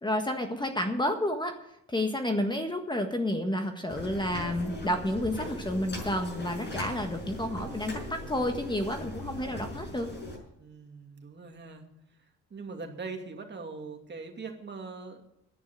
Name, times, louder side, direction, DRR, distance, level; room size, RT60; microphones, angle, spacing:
voice 1, 0.0-1.6 1.9-10.1, left 1 dB, 15° left, 5 dB, 1.5 m, -30 dB
sound 1, 3.9-10.4, left 1 dB, 35° left, 6.0 m, -39 dB
voice 2, 10.6-11.8 12.5-15.2, right 4 dB, 35° right, 3 dB, 2.4 m, -41 dB
11.0 x 9.5 x 7.5 m, 0.80 s
cardioid pair, 90°, 30 cm